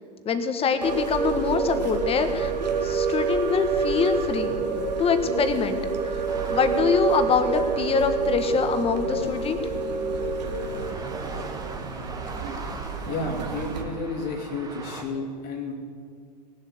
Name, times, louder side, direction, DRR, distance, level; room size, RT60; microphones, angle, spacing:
voice 1, 0.2-2.5 2.8-4.6 5.0-5.8 6.5-9.6, left 6 dB, 25° left, 8 dB, 1.5 m, -24 dB
sound 1, 0.8-13.8, right 5 dB, 80° right, 1.7 m, -28 dB
sound 2, 6.3-15.0, right 3 dB, 15° right, 1.8 m, -41 dB
voice 2, 13.1-15.7, left 3 dB, 50° left, 1 dB, 2.4 m, -31 dB
18.0 x 7.6 x 7.9 m, 2.1 s
hypercardioid pair, 100°, 21 cm